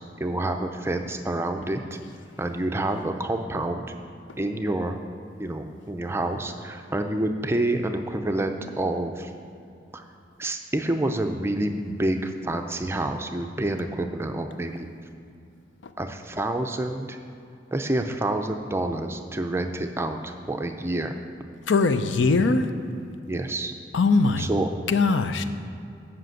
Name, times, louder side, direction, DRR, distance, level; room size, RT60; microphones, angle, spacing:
voice 1, 0.2-1.8 2.4-3.9 4.4-5.0 5.4-9.3 9.9-10.0 10.4-14.9 16.0-17.2 17.7-21.2 23.3-23.7 24.4-24.7, right 1 dB, 15° right, 5 dB, 0.4 m, -28 dB
voice 2, 21.7-22.7 23.9-24.5 24.9-25.4, left 3 dB, 85° left, 10 dB, 0.5 m, -21 dB
7.7 x 5.8 x 7.8 m, 2.6 s
head